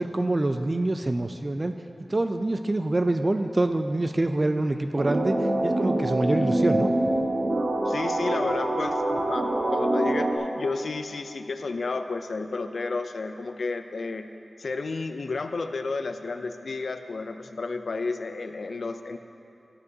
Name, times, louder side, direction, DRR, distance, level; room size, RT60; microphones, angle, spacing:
voice 1, 0.0-1.7 2.1-5.3 5.6-6.9, right 2 dB, 35° right, 7 dB, 0.3 m, -25 dB
sound 1, 5.0-10.4, right 1 dB, 65° right, 0.8 m, -25 dB
voice 2, 7.9-14.3 14.6-19.2, left 3 dB, 80° left, 8 dB, 0.4 m, -31 dB
12.0 x 6.8 x 2.7 m, 2.9 s
wide cardioid pair, 70°, 0 cm